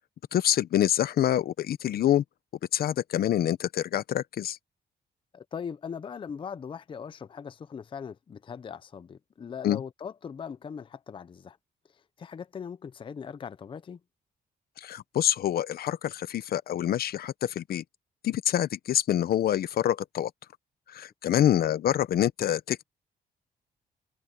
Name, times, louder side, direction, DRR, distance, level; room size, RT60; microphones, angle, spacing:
voice 1, 0.3-2.2 2.7-4.6 9.6-9.8 14.8-17.8 18.2-20.3 20.9-22.8, left 11 dB, 65° left, 0.8 m, -26 dB
voice 2, 5.3-11.6 11.9-14.0 21.3-21.5, left 7 dB, 30° left, 0.6 m, -40 dB
cardioid pair, 140°, 17 cm